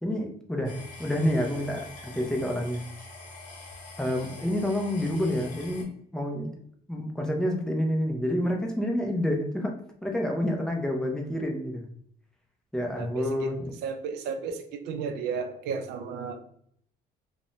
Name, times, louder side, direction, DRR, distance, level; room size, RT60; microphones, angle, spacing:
voice 1, 0.0-2.8 4.0-5.9 6.1-6.5 6.9-9.7 10.0-11.9 12.7-13.7, left 1 dB, 5° left, 1 dB, 0.5 m, -28 dB
sound 1, 0.6-5.8, left 2 dB, 50° left, 0.8 m, -45 dB
voice 2, 13.0-13.5 13.8-16.4, right 6 dB, 80° right, 7 dB, 0.4 m, -33 dB
2.5 x 2.1 x 3.0 m, 0.65 s
cardioid pair, 110°, 17 cm